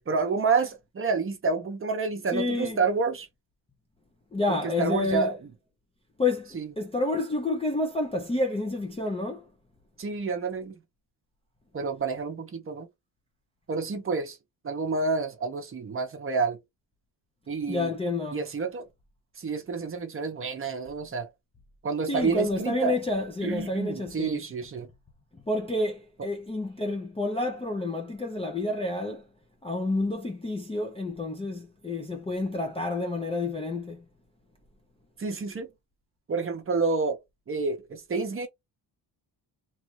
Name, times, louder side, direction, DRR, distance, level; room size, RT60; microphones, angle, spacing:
voice 1, 0.0-3.3 4.5-5.4 6.5-6.7 10.0-10.7 11.7-12.9 13.7-14.4 14.6-16.6 17.5-17.9 18.3-18.9 19.4-21.3 21.8-23.0 23.4-24.9 35.2-35.7 36.3-37.2 37.5-38.5, right 4 dB, 30° right, 0.7 m, -29 dB
voice 2, 2.3-2.8 4.3-5.3 6.2-9.5 17.7-18.4 22.1-24.4 25.3-29.2 29.6-34.0, left 2 dB, 15° left, 0.4 m, -29 dB
3.1 x 2.3 x 3.0 m
wide cardioid pair, 160°, 44 cm